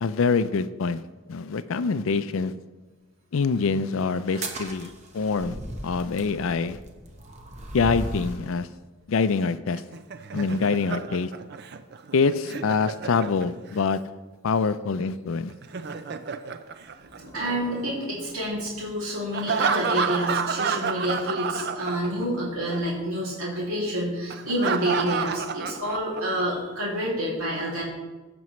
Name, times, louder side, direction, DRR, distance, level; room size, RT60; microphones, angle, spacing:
voice 1, 0.0-1.0 1.3-2.5 3.3-4.9 5.1-5.6 5.8-6.8 7.7-8.7 9.1-9.8 10.3-11.3 12.1-14.0 14.4-15.5, left 4 dB, 75° left, 13 dB, 0.4 m, -25 dB
sound 1, 4.2-8.5, right 1 dB, 35° right, 1.0 m, -36 dB
Laughter, 9.8-13.8 15.5-17.6 19.3-22.4 22.7-22.8 24.3-26.4, right 6 dB, 50° right, 0.5 m, -30 dB
voice 2, 17.0-27.8, equal, 85° right, -5 dB, 2.7 m, -28 dB
15.0 x 6.2 x 3.1 m, 1.2 s
head